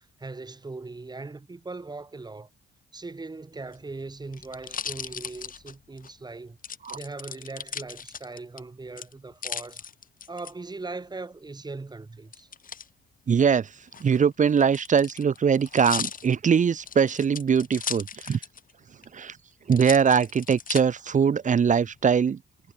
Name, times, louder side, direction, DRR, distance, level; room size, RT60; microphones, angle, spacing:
voice 1, 0.2-2.5 2.9-6.6 6.9-9.8 10.3-12.5, right 3 dB, 20° right, 2.6 m, -39 dB
sound 1, 3.6-6.1 6.6-8.6 9.0-10.5 12.3-12.9 13.8-18.7 19.0-19.1 19.7-20.8 21.4-22.0, left 7 dB, 45° left, 2.0 m, -37 dB
voice 2, 13.3-13.7 14.0-18.4 19.1-19.4 19.7-22.4, right 7 dB, 40° right, 1.0 m, -22 dB
cardioid pair, 90°, 20 cm